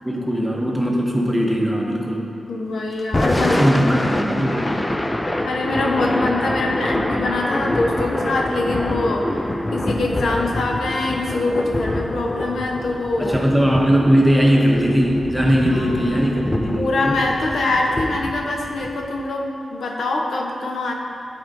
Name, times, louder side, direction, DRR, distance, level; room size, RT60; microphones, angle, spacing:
voice 1, 0.0-2.3 3.4-4.7 13.2-17.1, equal, ahead, -2 dB, 0.7 m, -19 dB
voice 2, 2.5-3.9 5.4-9.4 9.7-13.4 15.7-16.2 16.7-20.9, left 2 dB, 80° left, 0 dB, 0.8 m, -23 dB
Thunder / Rain, 3.0-19.2, left 1 dB, 15° left, 0.3 m, -26 dB
12.0 x 4.4 x 2.6 m, 2.6 s
wide cardioid pair, 160°, 0 cm